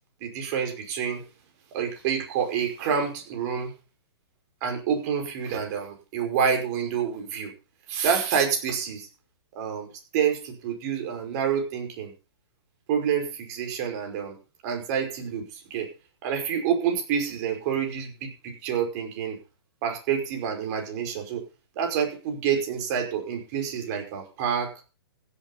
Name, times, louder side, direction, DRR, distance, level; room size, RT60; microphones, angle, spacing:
voice 1, 0.2-1.2 1.7-3.7 4.6-7.5 7.9-9.1 9.6-9.9 10.1-12.1 12.9-14.4 14.6-15.9 16.2-19.4 19.8-21.4 21.8-24.7, right 7 dB, 40° right, 3 dB, 5.4 m, -28 dB
16.0 x 8.6 x 5.4 m, 0.33 s
hypercardioid pair, 130°, 14 cm